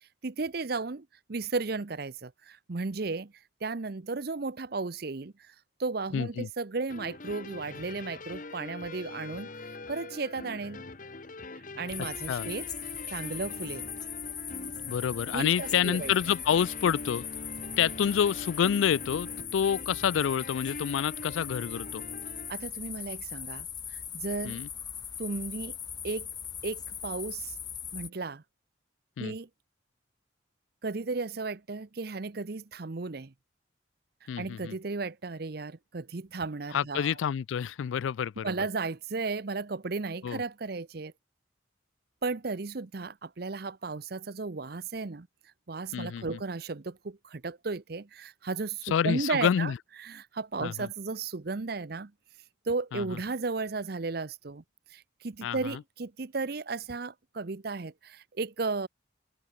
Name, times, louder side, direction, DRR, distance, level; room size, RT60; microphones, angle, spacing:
voice 1, 0.2-3.3 3.6-5.5 5.8-9.5 9.9-10.8 11.8-12.7 13.1-13.9 15.3-16.1 22.5-24.6 25.2-25.8 26.0-26.3 26.6-27.5 27.9-28.4 29.2-29.5 30.8-33.3 34.4-37.1 38.4-41.1 42.2-45.3 45.7-49.7 50.0-52.1 52.7-54.6 54.9-58.9, right 3 dB, 55° right, 0.7 m, -34 dB
voice 2, 6.1-6.5 12.3-12.5 14.9-17.3 17.8-22.0 24.4-24.7 29.2-29.3 34.3-34.8 36.7-38.7 40.2-40.4 45.9-46.4 48.9-49.8 50.6-50.9 52.9-53.2 55.4-55.8, left 8 dB, 80° left, 0.3 m, -28 dB
sound 1, 6.9-22.5, left 3 dB, 45° left, 1.2 m, -43 dB
sound 2, 11.9-28.1, left 8 dB, 20° left, 1.7 m, -39 dB
open air
head